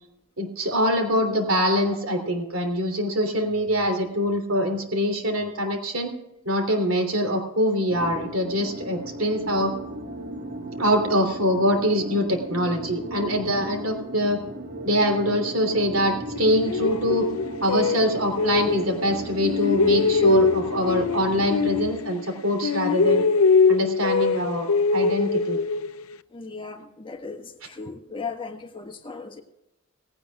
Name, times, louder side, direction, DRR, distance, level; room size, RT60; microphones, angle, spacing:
voice 1, 0.4-6.1 6.4-9.7 10.8-14.4 14.8-17.2 17.6-23.2 23.7-24.7 24.9-25.6, equal, 75° right, 4 dB, 3.2 m, -24 dB
sound 1, 7.9-21.9, right 1 dB, 50° right, 1.6 m, -35 dB
sound 2, 16.3-19.1 19.4-22.4 22.6-26.1, left 4 dB, 85° left, 0.6 m, -22 dB
voice 2, 26.3-29.4, left 4 dB, 25° left, 4 dB, 1.4 m, -37 dB
18.0 x 16.5 x 2.4 m, 0.89 s
head